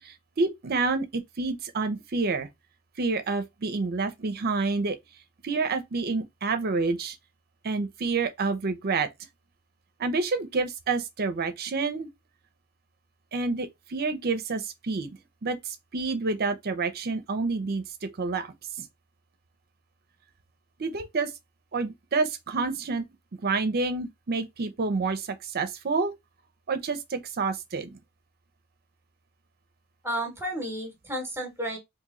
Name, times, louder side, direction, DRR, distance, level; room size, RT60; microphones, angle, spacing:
voice 1, 0.0-2.5 3.0-5.0 5.4-7.2 7.6-9.1 10.0-12.1 13.3-15.1 15.4-18.9 20.8-21.3 21.7-23.0 23.4-26.1 26.7-27.9, right 4 dB, 45° right, 0.5 m, -28 dB
voice 2, 30.0-31.8, right 1 dB, 10° right, 1.0 m, -32 dB
3.0 x 2.6 x 3.7 m
head